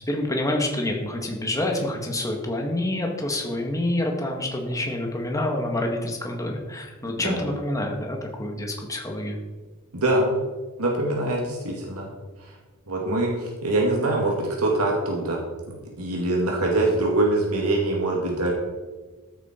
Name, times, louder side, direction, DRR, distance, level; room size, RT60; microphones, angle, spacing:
voice 1, 0.1-9.4, left 1 dB, 15° left, 1 dB, 1.8 m, -27 dB
voice 2, 9.9-10.4 10.8-12.1 12.4-12.5 12.9-15.4 15.7-18.5, right 2 dB, 85° right, -1 dB, 2.2 m, -24 dB
13.5 x 8.9 x 4.5 m, 1.3 s
head